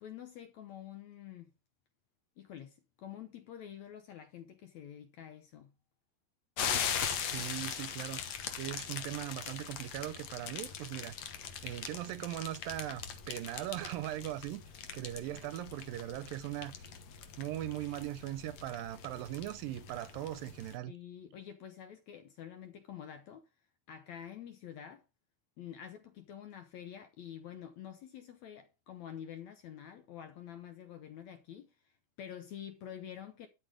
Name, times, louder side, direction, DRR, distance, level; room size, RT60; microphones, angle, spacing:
voice 1, 0.0-1.5 2.4-5.7 20.9-23.5 23.9-25.0 25.6-31.9 32.2-33.5, left 9 dB, 80° left, 1.6 m, -48 dB
sound 1, 6.6-20.8, left 7 dB, 60° left, 1.9 m, -41 dB
voice 2, 7.3-8.2 8.6-11.2 11.6-14.6 14.9-16.9 17.4-20.9, right 14 dB, 80° right, 2.2 m, -39 dB
12.0 x 6.0 x 4.8 m
omnidirectional pair, 4.4 m